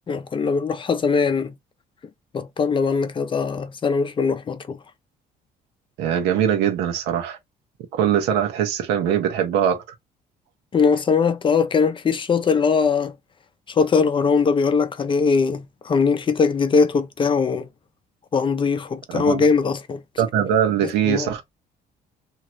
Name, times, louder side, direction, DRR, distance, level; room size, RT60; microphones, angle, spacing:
voice 1, 0.1-1.5 2.3-4.8 10.7-13.1 13.7-17.7 18.3-20.0 21.1-21.3, left 5 dB, 30° left, 0.5 m, -21 dB
voice 2, 6.0-7.4 7.9-9.8 19.1-19.4 20.2-21.4, right 9 dB, 90° right, 1.0 m, -21 dB
3.0 x 2.9 x 2.5 m
cardioid pair, 110°, 17 cm